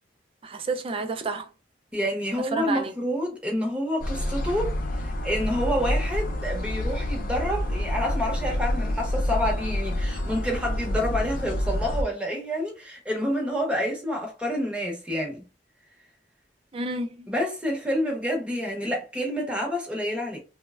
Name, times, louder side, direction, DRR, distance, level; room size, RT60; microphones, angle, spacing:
voice 1, 0.4-1.5 2.5-2.9 16.7-17.3, right 3 dB, 30° right, 0.3 m, -30 dB
voice 2, 1.9-15.4 17.3-20.4, equal, 5° right, 0.7 m, -28 dB
sound 1, 4.0-12.0, left 1 dB, 50° left, 0.4 m, -28 dB
3.1 x 2.1 x 2.3 m
head